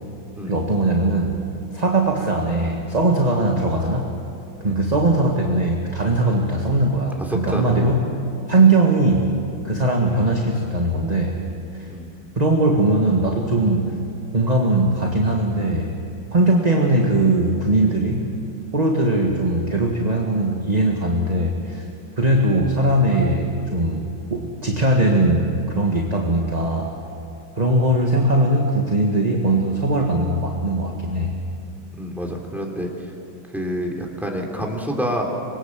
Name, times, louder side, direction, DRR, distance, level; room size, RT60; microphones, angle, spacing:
voice 1, 0.5-1.4 1.7-4.0 4.6-8.0 8.5-9.3 9.6-11.4 11.8-11.9 12.4-14.0 14.3-15.9 16.3-18.3 18.7-21.9 22.2-26.9 27.6-31.4, right 2 dB, 20° right, 0 dB, 1.7 m, -20 dB
voice 2, 7.2-7.9 11.9-12.1 32.0-32.9 33.5-35.3, equal, ahead, 0 dB, 3.0 m, -27 dB
26.0 x 22.0 x 7.5 m, 2.6 s
omnidirectional pair, 2.2 m